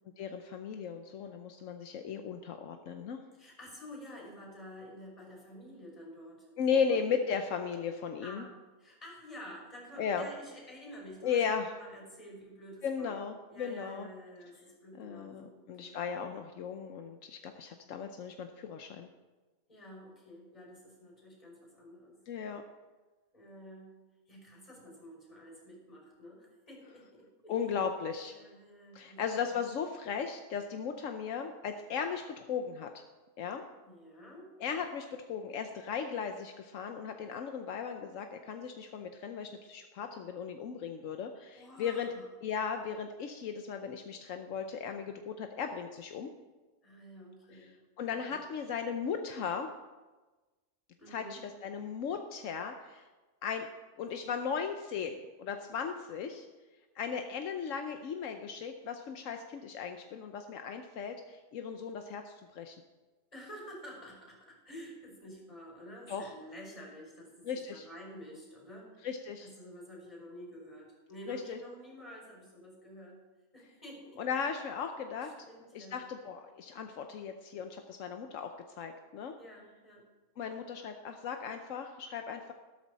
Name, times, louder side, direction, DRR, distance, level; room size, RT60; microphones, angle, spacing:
voice 1, 0.2-3.2 6.6-8.4 10.0-10.3 11.2-11.7 12.8-14.1 15.0-19.1 22.3-22.6 27.5-28.3 28.9-32.9 33.4-33.6 34.6-42.1 42.4-46.3 48.0-49.7 51.1-53.0 53.4-53.7 54.0-56.5 57.0-62.8 66.1-66.3 67.4-67.9 69.0-69.5 71.3-71.6 74.2-75.3 75.7-78.5 78.8-79.3 80.4-82.5, left 6 dB, 80° left, 5 dB, 1.1 m, -36 dB
voice 2, 3.4-7.0 8.2-11.4 11.7-13.2 13.5-16.0 19.7-22.2 23.3-23.9 24.3-27.6 28.3-29.6 33.8-34.5 41.5-42.3 46.8-47.7 48.1-48.4 51.0-51.4 63.3-69.0 69.4-73.2 73.5-74.2 75.1-76.0 79.4-80.0, equal, 25° left, -1 dB, 5.3 m, -50 dB
13.5 x 13.0 x 4.1 m, 1.2 s
omnidirectional pair, 1.3 m